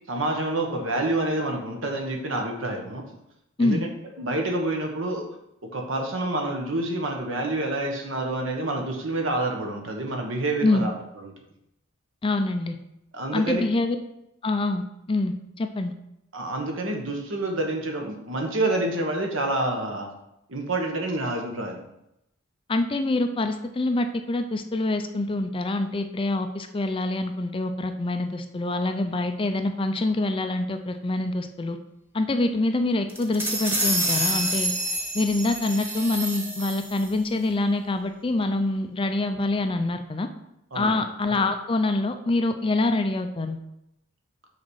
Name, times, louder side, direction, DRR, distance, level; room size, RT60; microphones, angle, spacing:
voice 1, 0.1-3.0 3.6-3.9 4.2-5.2 5.6-10.9 11.2-11.3 13.1-13.6 16.3-20.1 20.5-21.8 40.7-41.0, right 2 dB, 65° right, 2 dB, 1.3 m, -28 dB
voice 2, 12.2-12.8 13.3-14.0 14.4-15.9 22.7-31.8 32.1-34.7 35.1-40.3 40.7-43.6, left 2 dB, 25° left, 7 dB, 0.4 m, -25 dB
sound 1, 33.1-37.1, right 1 dB, 10° right, 0.9 m, -28 dB
6.3 x 4.2 x 6.3 m, 0.84 s
head